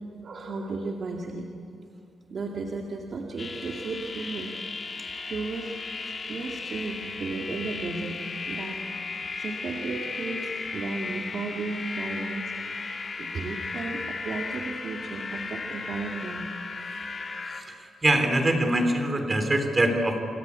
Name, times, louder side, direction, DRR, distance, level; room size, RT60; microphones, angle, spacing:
voice 1, 0.2-1.5 2.3-4.6 5.3-5.7 6.0-8.2 8.5-8.8 9.4-12.5 13.2-16.5, right 3 dB, 45° right, 0 dB, 2.2 m, -34 dB
sound 1, 3.4-17.6, left 4 dB, 30° left, 2.6 m, -35 dB
voice 2, 18.0-20.2, right 1 dB, 20° right, 6 dB, 3.4 m, -23 dB
28.5 x 23.5 x 8.3 m, 2.7 s
wide cardioid pair, 160°, 0 cm